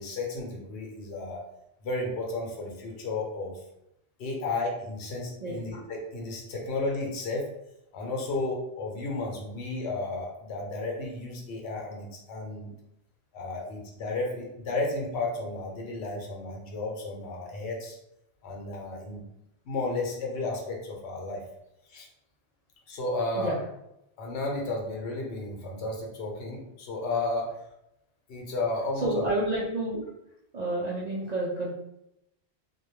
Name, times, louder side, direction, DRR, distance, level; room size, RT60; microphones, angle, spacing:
voice 1, 0.0-1.4 1.8-3.6 4.2-7.4 7.9-12.7 13.3-18.0 18.4-19.2 19.6-21.4 21.9-22.1 22.9-23.6 24.2-27.5 28.3-29.3, left 2 dB, 75° left, 0 dB, 0.9 m, -33 dB
voice 2, 5.4-5.7 23.3-23.6 28.9-30.0 30.5-31.7, right 1 dB, 55° right, -5 dB, 0.5 m, -30 dB
2.2 x 2.2 x 3.0 m, 0.83 s
omnidirectional pair, 1.1 m